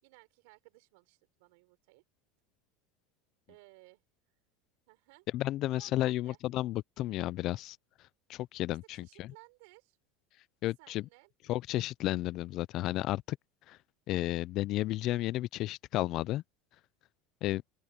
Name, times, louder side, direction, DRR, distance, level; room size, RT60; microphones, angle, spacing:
voice 1, 0.0-2.0 3.5-4.0 4.9-5.3 5.7-6.4 8.9-10.0 10.8-11.3, right 26 dB, 70° right, 3.9 m, -59 dB
voice 2, 5.3-7.8 8.3-9.3 10.6-11.1 11.5-13.4 13.7-13.8 14.1-16.4 17.4-17.6, left 15 dB, 40° left, 0.4 m, -32 dB
open air
cardioid pair, 170°, 0 cm